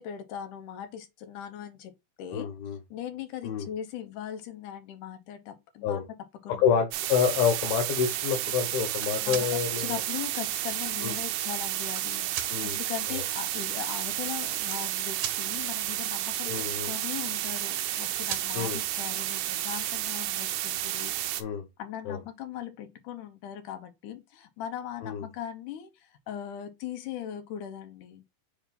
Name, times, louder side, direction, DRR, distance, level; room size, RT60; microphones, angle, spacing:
voice 1, 0.0-2.5 2.9-6.0 6.4-6.6 9.2-21.2 21.8-28.2, left 10 dB, 70° left, 2.2 m, -39 dB
voice 2, 2.3-2.8 3.4-3.7 5.8-6.0 6.6-10.0 11.0-11.1 12.5-12.8 13.1-13.2 16.4-16.9 18.5-18.8 21.4-21.7 22.1-22.2 25.0-25.2, left 7 dB, 90° left, 3.1 m, -28 dB
sound 1, 6.9-21.4, right 13 dB, 80° right, 2.0 m, -31 dB
sound 2, 8.9-9.5 10.5-10.6 11.4-12.0 12.3-12.5 13.7-13.8 14.0-14.1 14.5-15.4 17.3-18.0 18.3-18.5 19.9-20.0 20.3-20.8, right 9 dB, 65° right, 2.4 m, -38 dB
7.4 x 2.7 x 5.3 m
omnidirectional pair, 4.2 m